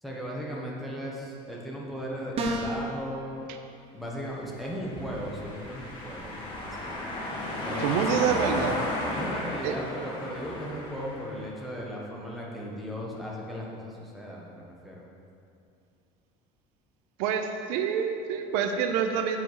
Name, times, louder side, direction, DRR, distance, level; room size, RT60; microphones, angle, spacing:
voice 1, 0.0-3.5 3.9-7.0 7.6-8.2 9.1-15.0, equal, ahead, -4 dB, 1.4 m, -37 dB
sound 1, 2.4-2.9, right 1 dB, 40° right, 1.0 m, -28 dB
sound 2, 4.7-11.5, left 1 dB, 30° left, 1.8 m, -34 dB
voice 2, 7.8-8.8 9.6-9.8 17.2-19.4, right 7 dB, 80° right, 6 dB, 0.7 m, -27 dB
7.7 x 7.7 x 4.7 m, 2.5 s
cardioid pair, 150°, 16 cm